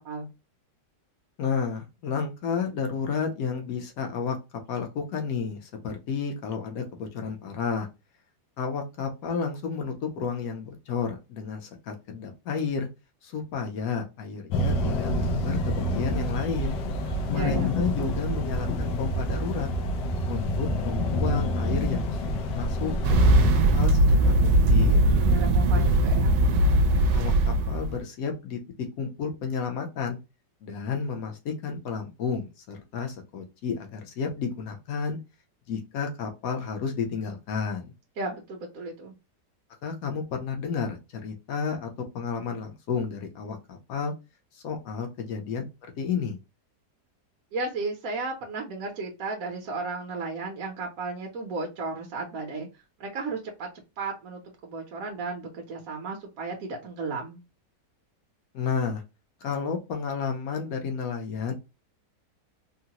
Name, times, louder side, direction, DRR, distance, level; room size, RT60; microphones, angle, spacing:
voice 1, 1.4-4.4 4.7-7.9 8.6-12.9 13.2-16.8 17.3-19.7 20.3-25.1 27.1-30.2 30.6-35.2 35.7-37.9 39.8-44.1 44.5-45.6 46.0-46.4 58.5-59.0 59.4-61.5, left 6 dB, 60° left, 3 dB, 1.1 m, -31 dB
sound 1, 14.5-23.5, left 1 dB, 90° left, 1.3 m, -28 dB
voice 2, 17.0-17.7 25.0-26.4 38.2-39.1 47.5-52.7 53.0-53.7 54.0-57.4, right 3 dB, 60° right, 1 dB, 1.1 m, -34 dB
sound 2, 23.0-28.0, right 1 dB, 85° right, 1.2 m, -20 dB
3.8 x 2.1 x 2.8 m, 0.26 s
omnidirectional pair, 1.9 m